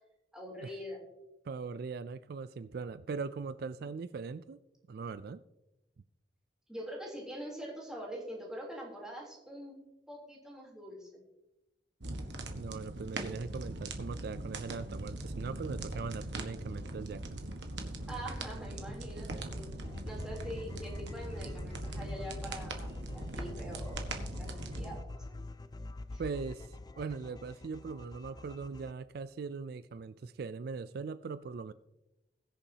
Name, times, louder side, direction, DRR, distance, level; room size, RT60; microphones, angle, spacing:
voice 1, 0.3-1.0 6.7-9.7 10.1-11.2 18.1-19.7 20.0-24.5 24.7-25.0 25.3-25.4 26.1-26.2, equal, 5° right, -3 dB, 3.3 m, -44 dB
voice 2, 1.4-4.6 4.9-5.4 12.5-17.4 26.2-31.7, right 5 dB, 60° right, 14 dB, 0.4 m, -40 dB
sound 1, 12.0-25.0, right 2 dB, 85° right, 1.3 m, -41 dB
sound 2, 19.8-28.9, left 2 dB, 25° left, 0.4 m, -45 dB
21.0 x 7.0 x 2.8 m, 0.95 s
head